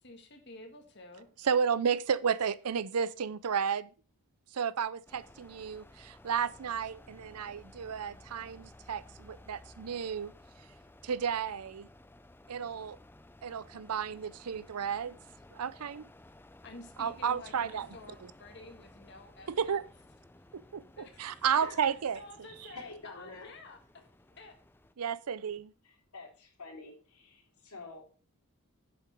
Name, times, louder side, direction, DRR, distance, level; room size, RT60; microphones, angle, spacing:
voice 1, 0.0-1.3 16.6-19.9 21.0-21.5 22.1-23.8 24.4-24.5, left 2 dB, 50° left, 1.8 m, -51 dB
voice 2, 1.4-3.9 4.5-10.3 11.0-11.9 12.5-13.0 13.4-15.2 15.5-16.0 17.0-17.9 19.5-19.8 20.5-20.8 21.2-22.2 25.0-25.7, right 7 dB, 90° right, 0.5 m, -32 dB
sound 1, 5.1-24.9, left 1 dB, 10° left, 0.4 m, -56 dB
voice 3, 20.3-21.0 21.3-21.8 22.6-23.5 25.8-28.1, left 3 dB, 85° left, 3.2 m, -49 dB
7.5 x 7.4 x 5.1 m
head